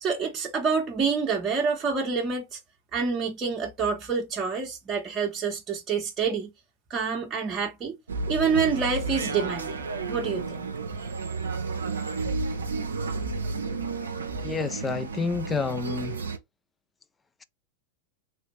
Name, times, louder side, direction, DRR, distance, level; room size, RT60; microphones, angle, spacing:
voice 1, 0.0-2.6 2.9-6.5 6.9-8.0 8.3-9.8 10.1-10.7, right 5 dB, 25° right, 0.8 m, -27 dB
sound 1, 8.1-16.4, right 3 dB, 70° right, 0.6 m, -32 dB
voice 2, 14.4-16.2, left 4 dB, 15° left, 0.4 m, -29 dB
3.3 x 2.4 x 3.1 m
figure-of-eight pair, 90°, 0 cm